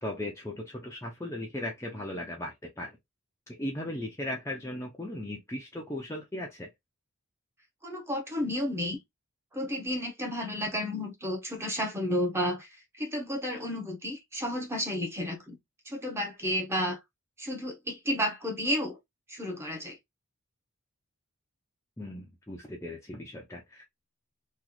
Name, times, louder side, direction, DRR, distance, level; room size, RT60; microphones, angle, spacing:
voice 1, 0.0-3.0 3.6-6.7 22.0-23.8, left 1 dB, 15° left, 0.6 m, -37 dB
voice 2, 7.8-9.0 9.5-12.7 13.0-15.6 15.8-17.0 17.4-19.0 19.3-20.0, equal, 10° right, 0.9 m, -32 dB
3.0 x 2.4 x 3.8 m
head